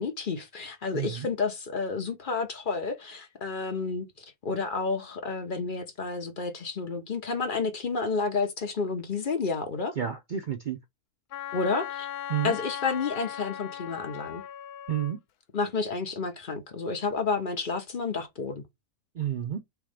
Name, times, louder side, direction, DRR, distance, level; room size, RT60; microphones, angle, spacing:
voice 1, 0.0-10.0 11.5-12.1 12.4-14.4 15.5-18.6, left 4 dB, 40° left, 0.8 m, -30 dB
voice 2, 0.9-1.3 10.0-10.8 12.3-12.6 14.9-15.2 19.1-19.6, right 10 dB, 70° right, 0.4 m, -30 dB
Wind instrument woodwind instrument, 11.3-15.2, left 11 dB, 80° left, 1.1 m, -38 dB
3.5 x 3.2 x 4.8 m
omnidirectional pair, 1.6 m